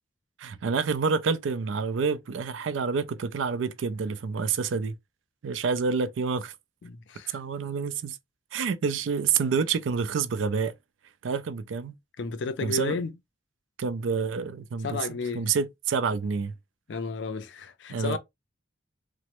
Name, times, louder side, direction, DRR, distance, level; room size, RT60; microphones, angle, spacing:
voice 1, 0.4-4.9 5.4-6.5 7.3-8.2 8.5-10.7 11.2-11.9 12.6-13.0 13.8-16.5 17.9-18.2, right 5 dB, 80° right, 0.4 m, -28 dB
voice 2, 6.8-7.4 12.2-13.1 14.8-15.5 16.9-18.2, left 4 dB, 65° left, 0.4 m, -32 dB
3.0 x 2.0 x 2.9 m
head